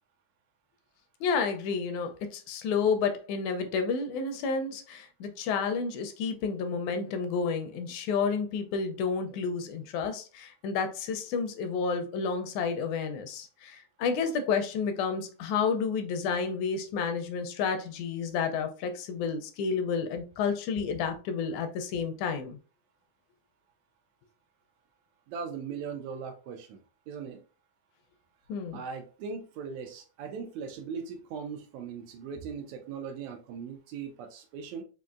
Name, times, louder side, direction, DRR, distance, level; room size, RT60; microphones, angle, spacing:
voice 1, 1.2-22.6 28.5-28.8, left 5 dB, 80° left, 7 dB, 1.9 m, -30 dB
voice 2, 25.3-26.8 27.1-27.4 28.7-34.8, right 6 dB, 80° right, 4 dB, 1.7 m, -39 dB
5.2 x 2.6 x 2.4 m, 0.35 s
omnidirectional pair, 3.5 m